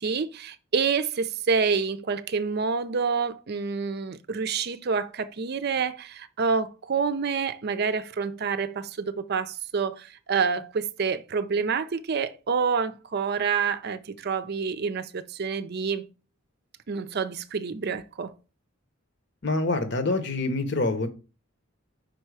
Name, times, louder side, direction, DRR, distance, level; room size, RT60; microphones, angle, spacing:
voice 1, 0.0-16.1 16.9-18.3, right 5 dB, 50° right, 0.5 m, -28 dB
voice 2, 19.4-21.1, left 2 dB, 55° left, 1.0 m, -26 dB
5.4 x 4.3 x 4.8 m
head